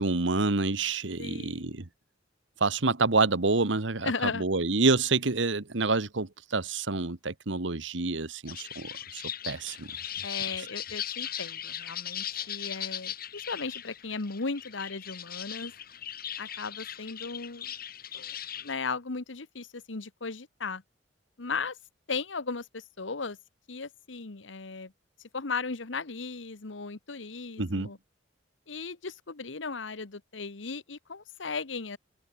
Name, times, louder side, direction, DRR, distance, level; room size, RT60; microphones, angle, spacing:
voice 1, 0.0-1.9 2.6-9.9 27.6-27.9, right 3 dB, 70° right, 1.4 m, -28 dB
voice 2, 1.2-1.8 4.0-4.4 10.2-15.7 16.4-17.7 18.1-20.8 21.4-21.8 22.1-23.4 23.7-24.9 25.3-28.0 28.7-32.0, left 4 dB, 75° left, 1.3 m, -36 dB
sound 1, 8.5-18.8, left 10 dB, 55° left, 4.2 m, -38 dB
open air
head